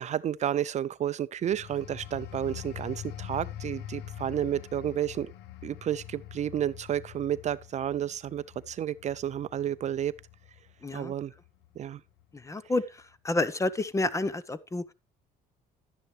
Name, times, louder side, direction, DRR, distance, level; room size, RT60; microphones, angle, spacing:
voice 1, 0.0-5.3 5.6-10.1 10.9-11.3 11.8-12.0, right 10 dB, 45° right, 0.5 m, -31 dB
sound 1, 1.4-11.8 12.2-12.5, left 12 dB, 80° left, 0.7 m, -44 dB
voice 2, 10.8-11.1 12.3-14.8, left 2 dB, 20° left, 0.7 m, -30 dB
11.5 x 9.6 x 3.2 m
cardioid pair, 110°, 17 cm